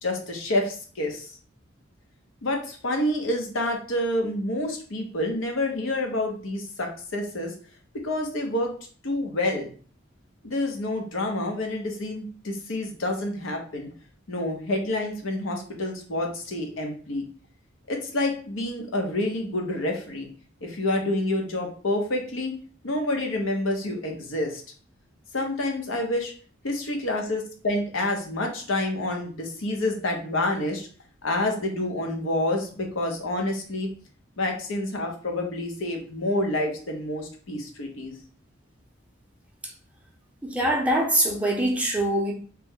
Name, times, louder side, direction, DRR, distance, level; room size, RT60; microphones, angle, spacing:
voice 1, 0.0-1.3 2.4-7.5 8.0-8.7 9.0-9.7 10.4-13.9 14.3-17.2 17.9-20.3 20.6-22.5 22.8-24.6 25.3-26.3 26.6-30.9 31.2-33.9 34.4-38.1, left 1 dB, 90° left, 0.8 m, -28 dB
voice 2, 40.4-42.3, right 1 dB, 5° right, 0.6 m, -23 dB
3.0 x 2.1 x 3.6 m
head